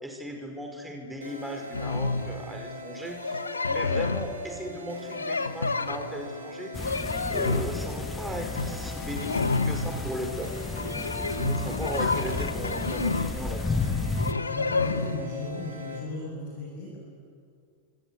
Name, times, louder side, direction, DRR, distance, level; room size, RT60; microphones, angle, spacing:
voice 1, 0.0-3.4 3.7-10.5 11.2-13.9, equal, 5° right, 3 dB, 4.9 m, -37 dB
sound 1, 1.2-16.0, left 1 dB, 75° right, 5.2 m, -42 dB
sound 2, 1.7-2.4 3.2-4.3 5.1-6.3 6.7-7.7 8.3-8.7 9.0-10.0 10.8-13.3 14.2-15.2, left 3 dB, 80° left, 1.4 m, -29 dB
sound 3, 6.7-14.3, left 3 dB, 10° left, 1.5 m, -33 dB
voice 2, 14.5-17.0, left 2 dB, 50° left, 0 dB, 6.9 m, -36 dB
27.0 x 25.5 x 8.4 m, 2.3 s
figure-of-eight pair, 90°, 0 cm